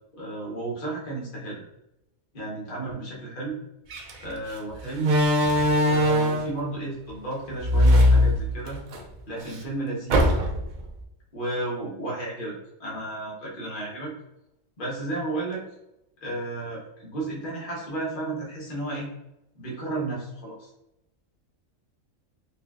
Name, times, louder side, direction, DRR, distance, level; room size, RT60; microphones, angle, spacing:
voice 1, 0.1-1.6 2.3-3.6 4.2-5.1 5.9-8.8 9.3-10.3 11.3-12.5 12.8-14.1 14.8-15.6 16.2-19.1 19.5-20.7, right 2 dB, 40° left, -4 dB, 1.1 m, -33 dB
Slam, 3.9-4.1 5.0-6.6 7.6-9.0 9.4-9.5 10.1-10.7, left 1 dB, 65° right, 0.4 m, -20 dB
4.2 x 2.7 x 2.3 m, 0.87 s
omnidirectional pair, 1.4 m